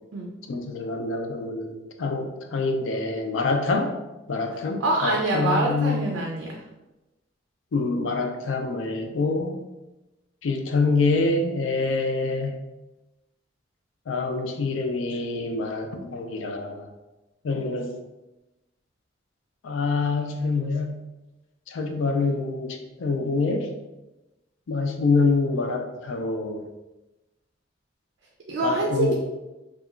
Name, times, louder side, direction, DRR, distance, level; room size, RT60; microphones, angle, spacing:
voice 1, 0.5-3.9 4.3-6.0 7.7-9.6 10.4-12.6 14.1-16.9 17.4-17.9 19.6-20.9 21.7-23.7 24.7-26.6 28.6-29.1, left 3 dB, 90° left, 4 dB, 0.4 m, -26 dB
voice 2, 4.8-6.5 28.5-29.1, right 2 dB, 80° right, -1 dB, 0.4 m, -25 dB
2.8 x 2.3 x 2.4 m, 1.0 s
head